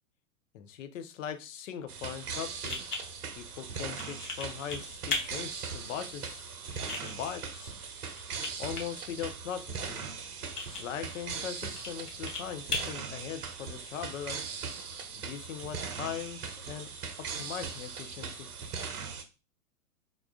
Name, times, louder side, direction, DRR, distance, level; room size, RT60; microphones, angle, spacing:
voice 1, 0.5-2.8 3.4-6.6 7.0-7.8 8.6-10.1 10.7-14.4 15.2-16.9 17.2-18.5, left 9 dB, 60° left, 10 dB, 0.6 m, -40 dB
sound 1, 1.9-19.2, right 5 dB, 75° right, 0.7 m, -40 dB
sound 2, 2.0-14.0, left 4 dB, 80° left, 1.0 m, -41 dB
3.6 x 2.3 x 2.4 m, 0.30 s
hypercardioid pair, 110°, 46 cm